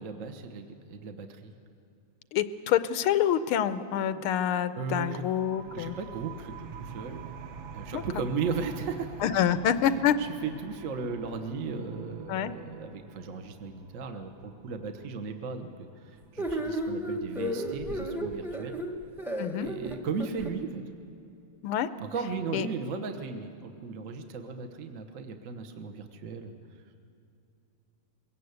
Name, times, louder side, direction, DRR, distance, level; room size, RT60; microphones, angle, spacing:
voice 1, 0.0-1.5 4.7-5.2 5.7-7.2 7.6-9.4 9.9-18.7 19.6-20.8 22.0-26.5, right 5 dB, 45° right, 5 dB, 1.3 m, -36 dB
voice 2, 2.3-6.0 7.9-8.0 9.2-10.1 12.3-12.5 19.4-19.7 21.6-21.9 22.5-22.7, left 10 dB, 90° left, 13 dB, 1.6 m, -27 dB
sound 1, 5.2-16.5, right 6 dB, 65° right, 0.7 m, -47 dB
sound 2, 16.4-20.5, right 1 dB, ahead, 0.9 m, -33 dB
22.0 x 17.5 x 8.1 m, 2.7 s
omnidirectional pair, 2.3 m